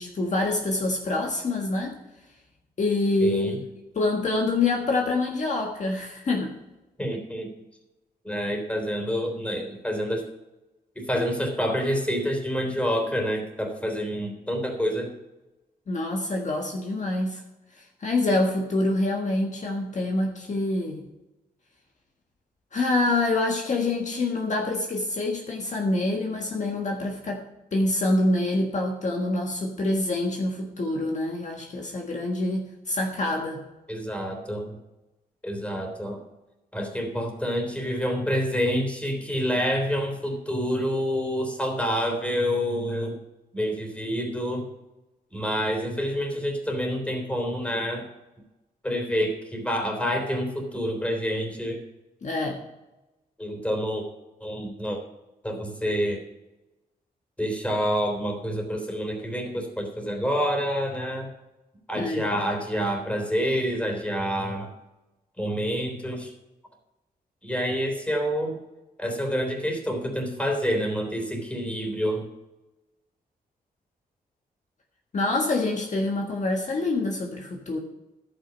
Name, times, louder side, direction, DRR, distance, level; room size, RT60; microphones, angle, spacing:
voice 1, 0.0-2.0 2.8-3.5 3.9-6.5 15.9-17.4 17.8-21.1 22.7-27.4 27.7-33.6 52.2-52.6 61.9-62.4 75.1-77.8, left 2 dB, 50° left, 1 dB, 1.6 m, -26 dB
voice 2, 3.2-3.6 7.0-7.5 8.2-10.2 10.9-15.1 33.9-34.8 35.4-36.2 36.7-43.2 43.5-44.7 45.3-48.1 48.8-51.8 53.4-54.0 54.4-55.0 55.4-56.2 57.4-61.3 61.9-64.7 65.4-66.3 67.4-68.6 69.0-72.3, equal, 10° left, 2 dB, 3.4 m, -27 dB
11.5 x 8.9 x 5.3 m, 1.0 s
cardioid pair, 85°, 16 cm